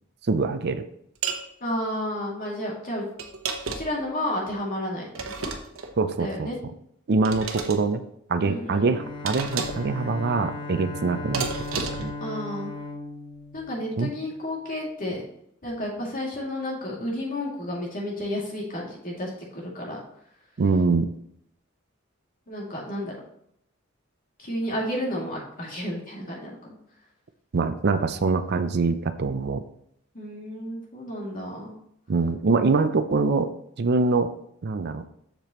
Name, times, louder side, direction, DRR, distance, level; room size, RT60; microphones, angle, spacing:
voice 1, 0.3-0.8 6.0-6.5 7.1-8.0 8.3-12.1 14.0-14.1 20.6-21.1 27.5-29.6 32.1-33.5 33.8-34.3 34.6-35.1, right 4 dB, 55° right, 10 dB, 0.5 m, -24 dB
sound 1, 1.2-1.5 3.2-4.0 5.1-5.9 7.2-7.8 9.3-9.9 11.3-12.1, right 5 dB, 80° right, 1.0 m, -31 dB
voice 2, 1.6-3.1 3.7-5.1 5.4-5.5 6.2-6.6 8.4-8.9 12.2-12.7 13.5-15.2 15.6-20.0 22.5-23.1 24.4-26.8 30.1-31.7, left 1 dB, 45° left, -3 dB, 2.5 m, -31 dB
Bowed string instrument, 8.8-14.4, left 3 dB, 25° left, 1.0 m, -37 dB
7.6 x 6.7 x 3.0 m, 0.71 s
head